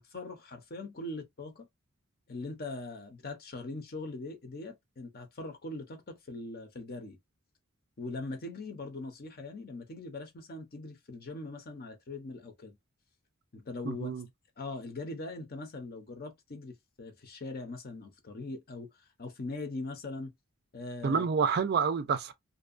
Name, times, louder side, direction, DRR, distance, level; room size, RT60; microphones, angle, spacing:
voice 1, 0.0-1.7 2.3-7.2 8.0-12.8 13.5-14.1 14.6-20.3 20.7-21.3, left 2 dB, 40° left, 0.6 m, -41 dB
voice 2, 13.8-14.2 21.0-22.3, right 6 dB, 45° right, 0.3 m, -28 dB
2.6 x 2.2 x 2.4 m
head